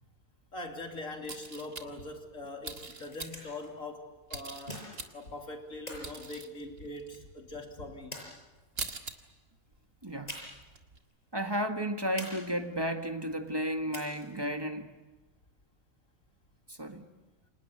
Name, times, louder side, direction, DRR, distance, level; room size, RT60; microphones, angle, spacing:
voice 1, 0.5-4.9 5.1-8.2, left 2 dB, 70° left, 3 dB, 3.4 m, -42 dB
sound 1, 1.2-2.1 2.6-3.5 4.3-5.4 5.7-6.5 6.8-7.2 7.7-7.8 8.2-8.3 8.5-9.1 9.5-9.8 10.1-11.0, right 4 dB, 65° right, 2.3 m, -42 dB
sound 2, 2.8-3.7 4.7-5.3 5.9-7.1 8.1-8.9 10.3-10.7 11.0-11.1 12.2-12.9 13.9-14.5, left 1 dB, 30° left, 7.0 m, -45 dB
voice 2, 10.0-10.4 11.3-14.9 16.7-17.1, equal, 15° right, 5 dB, 1.7 m, -33 dB
29.5 x 26.0 x 6.8 m, 1.1 s
omnidirectional pair, 1.4 m